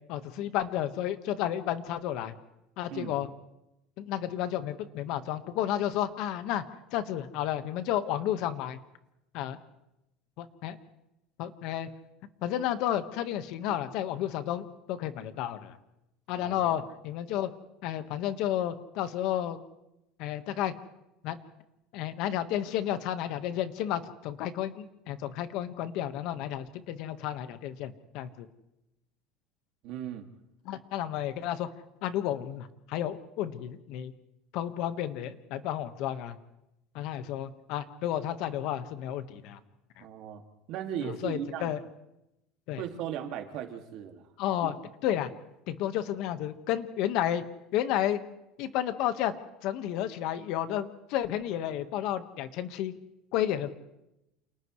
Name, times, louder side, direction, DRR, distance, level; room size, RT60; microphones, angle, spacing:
voice 1, 0.1-2.3 2.8-3.3 4.0-6.6 6.9-8.8 9.3-9.6 10.4-10.8 11.4-11.9 12.4-15.8 16.3-17.5 17.8-19.6 20.2-20.7 21.2-21.4 21.9-28.5 30.6-31.7 32.0-34.1 34.5-36.4 36.9-39.6 40.0-40.1 41.0-41.8 42.7-42.8 44.4-44.7 45.0-45.3 45.7-47.4 47.7-48.2 48.6-49.3 49.6-52.9 53.3-53.7, left 11 dB, 60° left, 10 dB, 1.5 m, -32 dB
voice 2, 16.4-16.9 29.8-30.3 40.0-40.4 40.7-41.7 42.8-44.2 44.6-44.7, right 9 dB, 55° right, 4 dB, 2.3 m, -37 dB
29.0 x 28.5 x 3.2 m, 0.89 s
cardioid pair, 150°, 0 cm